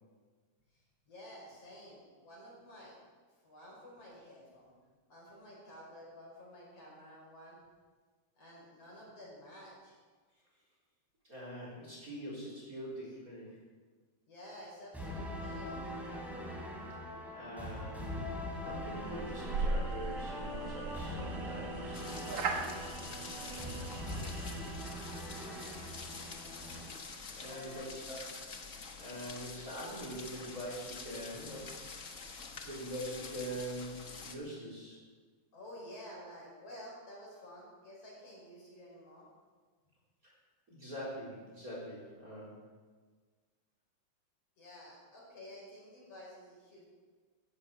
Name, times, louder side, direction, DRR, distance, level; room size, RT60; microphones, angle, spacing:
voice 1, 0.7-3.0 3.4-4.7 5.1-7.6 8.4-10.0 14.3-15.9 27.4-28.0 35.5-39.2 44.6-46.9, equal, 50° left, -4 dB, 6.3 m, -51 dB
voice 2, 11.2-13.6 17.3-18.1 18.6-22.5 23.3-23.6 27.3-28.4 29.0-31.7 32.6-35.0 40.2-40.4 40.7-42.6, equal, 25° right, -4 dB, 4.3 m, -44 dB
sound 1, 14.9-26.9, equal, ahead, 3.3 m, -42 dB
sound 2, 18.7-24.8, right 3 dB, 65° right, 2.6 m, -39 dB
sound 3, 21.9-34.3, left 4 dB, 85° left, 0.6 m, -47 dB
15.5 x 15.0 x 5.2 m, 1.5 s
omnidirectional pair, 3.5 m